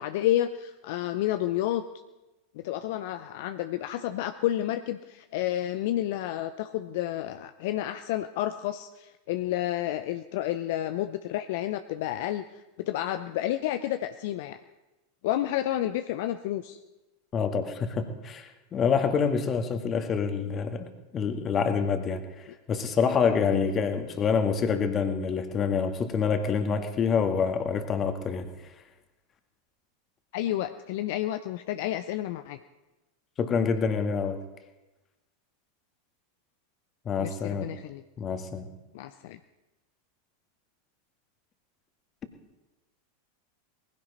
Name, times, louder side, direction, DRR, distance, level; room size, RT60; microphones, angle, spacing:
voice 1, 0.0-1.8 2.5-14.6 15.2-16.8 30.3-32.6 37.2-38.0 38.9-39.4, left 13 dB, 60° left, 10 dB, 0.6 m, -30 dB
voice 2, 17.3-20.9 21.1-22.2 22.7-28.5 33.4-34.4 37.1-37.7 38.2-38.7, left 6 dB, 30° left, 7 dB, 1.9 m, -26 dB
19.5 x 16.0 x 4.2 m, 1.1 s
hypercardioid pair, 90°, 0 cm